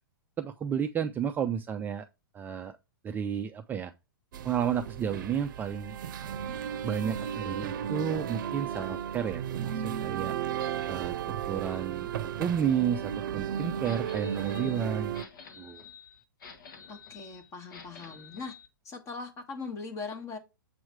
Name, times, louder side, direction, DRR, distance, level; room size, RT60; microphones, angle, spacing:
voice 1, 0.4-2.1 2.3-2.8 3.0-3.9 4.4-6.0 6.8-10.3 10.9-15.1 15.6-15.8, right 8 dB, 15° right, 0.4 m, -32 dB
sound 1, 4.3-15.2, right 9 dB, 60° right, 0.6 m, -34 dB
sound 2, 13.8-18.7, left 6 dB, 65° left, 1.4 m, -50 dB
voice 2, 16.9-18.5 18.8-20.4, left 4 dB, 25° left, 1.3 m, -40 dB
7.4 x 3.1 x 4.6 m
hypercardioid pair, 125°, 12 cm